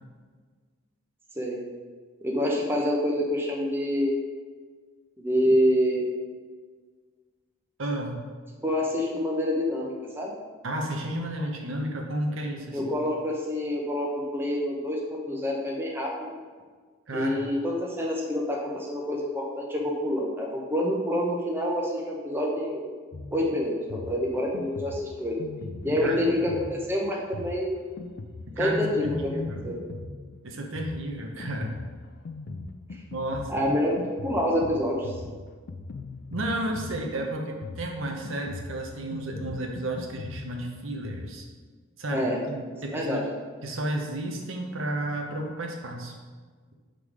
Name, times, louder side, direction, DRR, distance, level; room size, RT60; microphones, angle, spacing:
voice 1, 2.2-4.1 5.2-6.0 8.6-10.3 12.7-16.3 17.1-22.8 23.3-25.3 25.8-27.8 28.6-29.3 29.6-29.7 33.5-33.9 34.2-35.2 42.1-42.4 42.9-43.2, equal, 10° right, -2 dB, 0.8 m, -27 dB
voice 2, 7.8-8.2 10.6-12.9 17.1-17.4 26.0-26.2 28.5-29.7 30.4-31.8 33.1-33.7 36.3-41.5 42.0-43.2 43.6-46.1, right 1 dB, 65° right, 1 dB, 0.9 m, -32 dB
Drum kit, 23.1-41.3, left 3 dB, 50° left, 0.4 m, -41 dB
6.7 x 3.8 x 4.8 m, 1.5 s
head